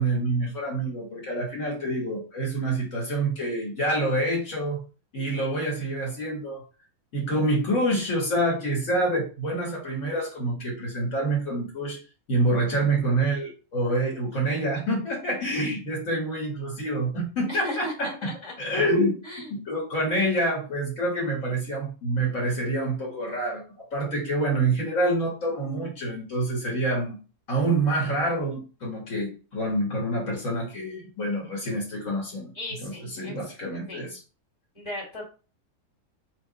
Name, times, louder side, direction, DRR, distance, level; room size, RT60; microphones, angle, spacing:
voice 1, 0.0-4.8 5.1-6.6 7.1-12.0 12.3-18.3 18.6-19.2 19.5-27.2 27.5-32.5 32.8-34.2, right 1 dB, 65° left, -4 dB, 2.0 m, -27 dB
voice 2, 17.5-18.5 19.2-19.5 32.5-33.4 33.9-34.1 34.7-35.3, left 1 dB, 20° left, -4 dB, 2.0 m, -36 dB
4.1 x 2.3 x 4.0 m, 0.35 s
omnidirectional pair, 1.5 m